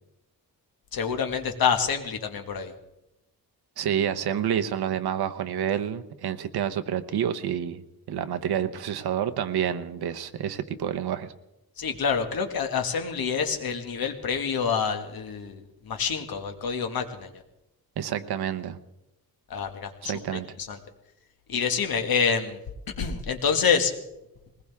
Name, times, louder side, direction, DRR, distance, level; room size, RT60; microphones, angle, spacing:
voice 1, 0.9-2.7 11.8-17.3 19.5-20.8 21.5-22.6 23.0-23.9, left 6 dB, 65° left, 5 dB, 1.9 m, -27 dB
voice 2, 3.8-7.8 8.1-11.3 18.0-18.8 20.0-20.5, right 9 dB, 75° right, 8 dB, 1.0 m, -28 dB
21.0 x 19.5 x 3.6 m, 0.90 s
wide cardioid pair, 160°, 38 cm